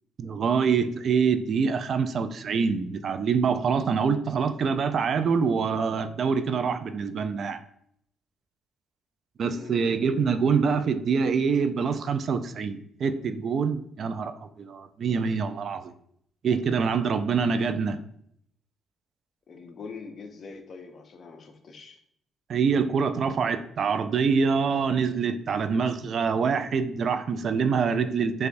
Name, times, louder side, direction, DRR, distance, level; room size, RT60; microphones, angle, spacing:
voice 1, 0.2-7.6 9.4-15.9 16.4-18.0 22.5-28.5, right 5 dB, 55° right, 10 dB, 0.3 m, -25 dB
voice 2, 9.4-10.2 19.5-22.0, left 4 dB, 50° left, 6 dB, 0.6 m, -43 dB
6.4 x 2.2 x 2.5 m, 0.69 s
cardioid pair, 90°, 0 cm